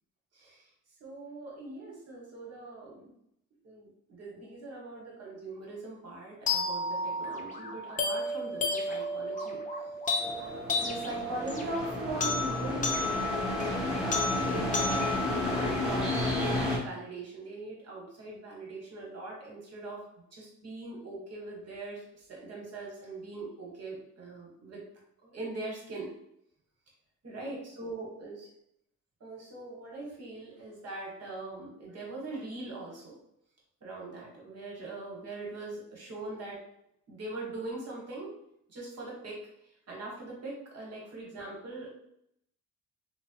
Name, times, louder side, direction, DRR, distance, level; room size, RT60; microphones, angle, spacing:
voice 1, 0.3-0.7 1.0-3.1 3.6-9.6 10.0-10.2 10.8-15.1 15.4-20.0 20.3-24.8 25.2-26.1 27.2-28.5 29.2-33.2 33.8-36.6 37.1-38.3 38.7-39.4 39.9-41.9, right 2 dB, 55° right, -2 dB, 1.3 m, -41 dB
sound 1, 6.5-16.5, left 2 dB, 25° left, 0.5 m, -33 dB
sound 2, 10.2-16.8, left 1 dB, ahead, 0.9 m, -32 dB
3.0 x 2.1 x 2.8 m, 0.75 s
cardioid pair, 90°, 30 cm